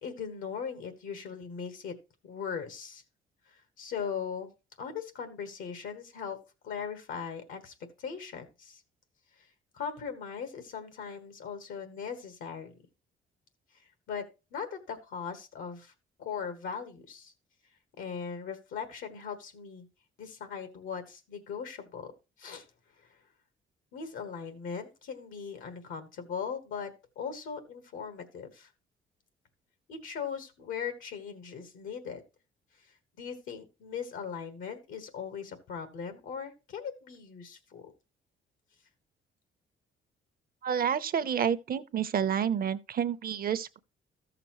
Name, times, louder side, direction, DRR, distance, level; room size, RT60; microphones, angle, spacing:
voice 1, 0.0-1.9 2.2-3.0 3.5-4.5 4.8-6.4 6.6-8.8 9.7-12.7 14.1-14.2 14.5-15.9 16.2-17.3 18.0-19.8 20.2-22.1 22.4-22.6 23.9-26.9 27.1-28.7 29.9-32.2 33.2-37.9, left 6 dB, 85° left, 1.4 m, -39 dB
voice 2, 40.6-43.8, right 8 dB, 50° right, 0.7 m, -29 dB
13.5 x 6.7 x 3.0 m
cardioid pair, 90°, 20 cm